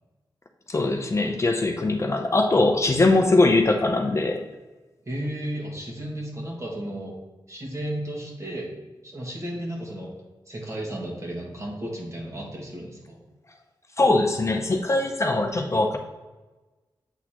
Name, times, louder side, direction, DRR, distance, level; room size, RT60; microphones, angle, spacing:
voice 1, 0.7-4.4 14.0-16.0, left 2 dB, 35° left, 4 dB, 0.6 m, -21 dB
voice 2, 5.0-7.1 7.5-8.7 9.0-10.1 10.5-13.2, right 1 dB, 35° right, -2 dB, 1.7 m, -33 dB
8.0 x 4.1 x 2.9 m, 1.2 s
wide cardioid pair, 95°, 8 cm